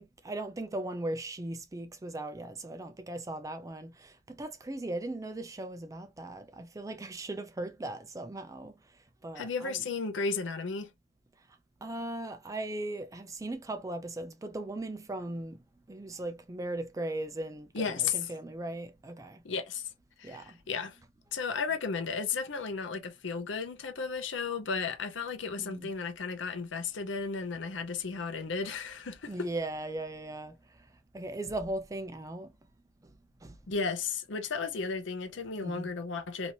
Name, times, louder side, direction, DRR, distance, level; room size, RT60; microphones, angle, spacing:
voice 1, 0.0-8.7 9.2-9.8 11.8-15.6 15.9-19.4 20.2-20.6 25.6-25.9 29.3-30.6 31.1-32.5 33.4-33.6 35.6-35.9, right 1 dB, 20° right, 0.4 m, -38 dB
voice 2, 9.4-10.9 17.7-18.2 19.4-19.8 20.2-21.0 21.3-29.5 33.7-36.5, left 5 dB, 80° left, 0.7 m, -34 dB
3.0 x 2.6 x 2.6 m
head